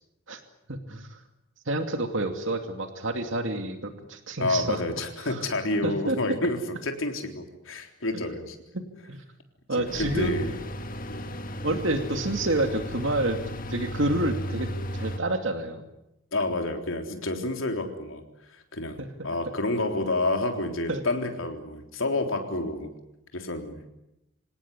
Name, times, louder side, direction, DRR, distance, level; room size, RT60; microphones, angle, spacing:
voice 1, 0.7-1.2 1.7-4.8 5.3-5.4 5.8-6.2 8.7-9.2 9.7-10.5 11.6-13.4 13.7-15.8 19.0-19.3 20.9-21.0, right 2 dB, 70° right, 6 dB, 2.5 m, -29 dB
voice 2, 4.4-8.6 9.8-10.6 11.1-11.2 16.3-18.2 18.7-22.9 23.3-23.8, left 2 dB, 80° left, 4 dB, 3.7 m, -29 dB
sound 1, 9.9-15.2, equal, 40° left, 1.9 m, -34 dB
27.0 x 18.0 x 9.8 m, 0.88 s
head